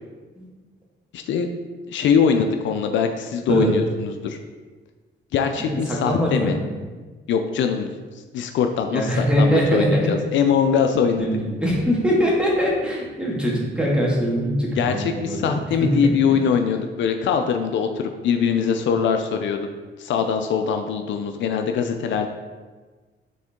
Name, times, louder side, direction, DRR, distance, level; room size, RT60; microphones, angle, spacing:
voice 1, 1.1-1.5 1.9-4.4 5.3-6.5 7.3-8.0 8.3-11.3 14.7-19.6 20.0-22.3, left 6 dB, 70° left, 6 dB, 0.5 m, -22 dB
voice 2, 5.6-6.5 8.9-10.1 11.2-16.1, equal, 5° right, -4 dB, 2.0 m, -22 dB
7.6 x 3.8 x 3.6 m, 1.4 s
cardioid pair, 90°, 20 cm